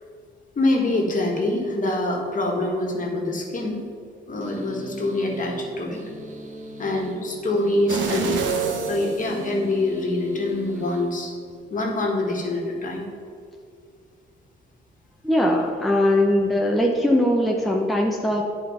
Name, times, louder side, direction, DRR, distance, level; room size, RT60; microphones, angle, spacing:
voice 1, 0.5-3.8 4.3-6.0 6.8-8.4 8.9-11.3 11.7-13.0, left 2 dB, 40° left, 0 dB, 1.6 m, -25 dB
sound 1, 4.4-11.8, right 2 dB, 40° right, 1.1 m, -40 dB
sound 2, 7.9-10.0 10.5-10.6, right 5 dB, 70° right, 1.1 m, -27 dB
voice 2, 15.2-18.4, left 1 dB, ahead, 0 dB, 0.7 m, -20 dB
9.2 x 4.2 x 5.5 m, 2.3 s
cardioid pair, 90°, 20 cm